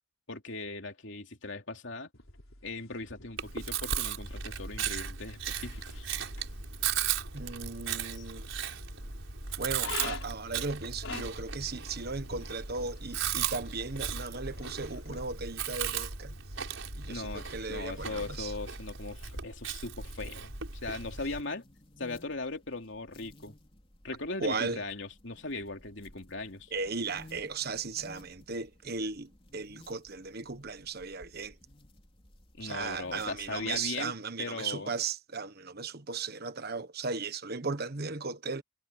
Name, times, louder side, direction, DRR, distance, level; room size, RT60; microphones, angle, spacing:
voice 1, 0.3-2.1 2.6-6.1 8.1-8.2 17.1-20.5 20.8-21.6 22.0-23.5 24.0-26.7 32.6-34.1 34.4-34.9, left 3 dB, 65° left, 3.3 m, -39 dB
sound 1, 2.1-15.2, left 5 dB, 80° left, 4.5 m, -48 dB
Chewing mastication, 3.4-21.4, right 7 dB, 70° right, 5.4 m, -36 dB
voice 2, 7.3-8.7 9.6-16.3 16.9-18.5 24.4-24.8 26.7-31.6 32.6-38.6, right 4 dB, 50° right, 1.4 m, -36 dB
sound 2, 21.1-34.0, left 1 dB, 30° left, 3.6 m, -56 dB
head